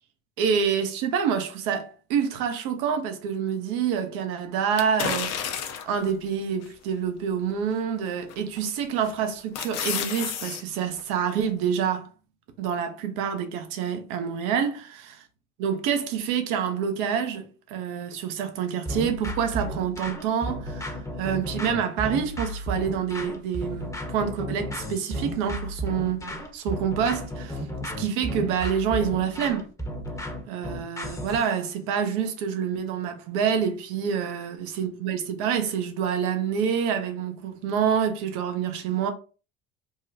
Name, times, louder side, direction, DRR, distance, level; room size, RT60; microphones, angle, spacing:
voice 1, 0.4-5.6 5.9-12.1 12.6-15.2 15.6-27.6 28.0-29.7 30.5-39.1, right 7 dB, 65° right, 0.8 m, -27 dB
sound 1, 4.8-6.0 6.6-6.7 8.3-8.6 9.1-10.6 11.0-11.1, left 8 dB, 45° left, 0.6 m, -30 dB
sound 2, 18.9-31.5, equal, 10° left, 0.8 m, -33 dB
3.6 x 2.2 x 2.6 m
hypercardioid pair, 70°, 36 cm